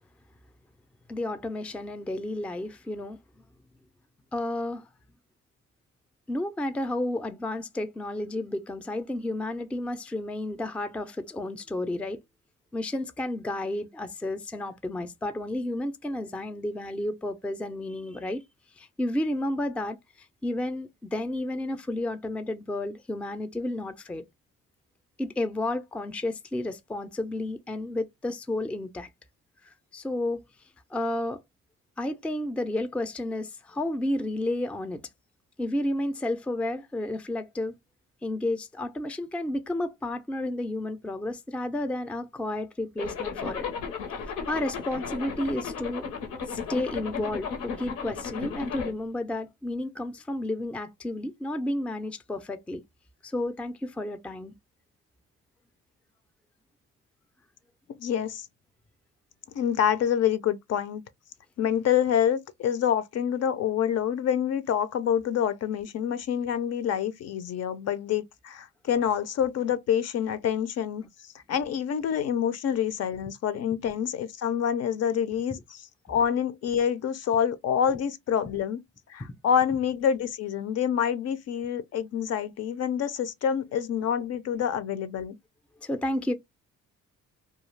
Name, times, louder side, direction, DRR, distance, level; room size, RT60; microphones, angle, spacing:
voice 1, 1.1-3.2 4.3-4.9 6.3-12.2 12.7-18.4 18.8-20.0 20.4-24.2 25.2-29.1 29.7-30.4 30.9-31.4 32.0-35.0 35.6-37.7 38.2-43.7 44.5-46.0 46.5-52.8 53.2-54.5 85.8-86.3, left 1 dB, 5° left, 0.3 m, -31 dB
Zipper (clothing), 43.0-48.9, left 6 dB, 90° left, 0.9 m, -35 dB
voice 2, 58.0-58.5 59.5-61.0 61.6-71.1 71.5-78.8 79.1-85.4, left 8 dB, 55° left, 0.5 m, -27 dB
2.3 x 2.3 x 3.1 m
cardioid pair, 90°, 30 cm